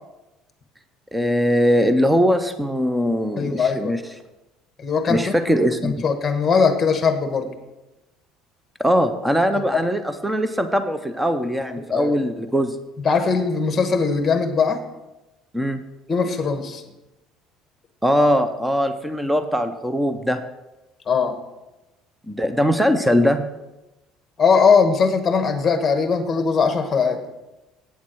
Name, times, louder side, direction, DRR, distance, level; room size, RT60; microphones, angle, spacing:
voice 1, 1.1-4.0 5.1-6.0 8.8-12.8 15.5-15.8 18.0-20.4 22.3-23.5, equal, 5° right, 9 dB, 0.5 m, -21 dB
voice 2, 3.4-3.9 4.8-5.4 5.8-7.5 9.5-9.8 11.9-12.2 13.0-14.8 16.1-16.8 21.1-21.4 24.4-27.2, left 5 dB, 20° left, 7 dB, 1.1 m, -20 dB
8.5 x 7.3 x 6.1 m, 1.0 s
cardioid pair, 165°, 0 cm